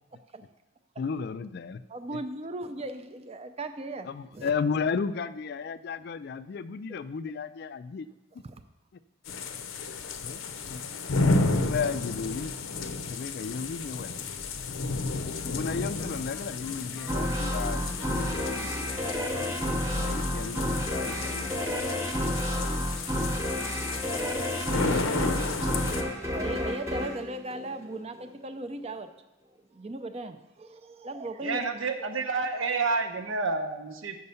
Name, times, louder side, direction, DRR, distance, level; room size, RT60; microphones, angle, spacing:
voice 1, 1.0-1.8 2.1-2.2 4.0-8.1 8.3-8.4 10.2-10.8 11.5-12.6 13.1-14.3 15.4-18.7 20.0-21.6, left 5 dB, 50° left, 14 dB, 0.3 m, -34 dB
voice 2, 1.9-4.5 8.4-8.6 26.2-29.1 29.7-31.7, right 1 dB, 30° right, 8 dB, 0.5 m, -37 dB
sound 1, 9.3-26.0, left 3 dB, 85° left, 0.6 m, -32 dB
Wind instrument woodwind instrument, 15.3-21.7, left 2 dB, 20° left, 0.7 m, -49 dB
sound 2, 17.1-28.3, equal, 15° right, 0.9 m, -30 dB
voice 3, 31.4-34.2, right 4 dB, 75° right, 6 dB, 0.8 m, -29 dB
6.4 x 5.4 x 6.9 m, 0.95 s
head